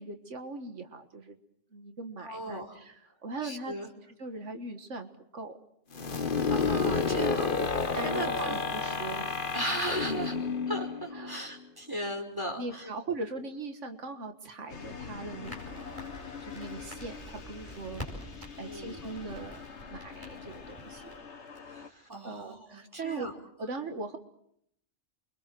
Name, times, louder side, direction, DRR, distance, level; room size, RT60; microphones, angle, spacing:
voice 1, 0.0-1.4 1.7-3.7 4.2-5.5 7.9-9.4 11.1-11.5 12.6-18.0 18.6-21.2 22.2-23.3 23.6-24.2, right 3 dB, 85° right, 7 dB, 1.9 m, -40 dB
voice 2, 2.2-2.8 3.4-3.9 6.0-6.2 6.5-8.6 9.5-10.4 10.7-12.9 18.6-19.0 21.6-23.3, right 1 dB, 20° right, 1 dB, 5.0 m, -37 dB
sound 1, 5.9-11.6, left 4 dB, 50° left, 1.3 m, -30 dB
sound 2, 14.7-21.9, left 6 dB, 70° left, 1.8 m, -45 dB
Crackle, 15.4-21.2, equal, 40° right, 8.1 m, -47 dB
28.5 x 24.0 x 7.7 m, 0.74 s
omnidirectional pair, 1.2 m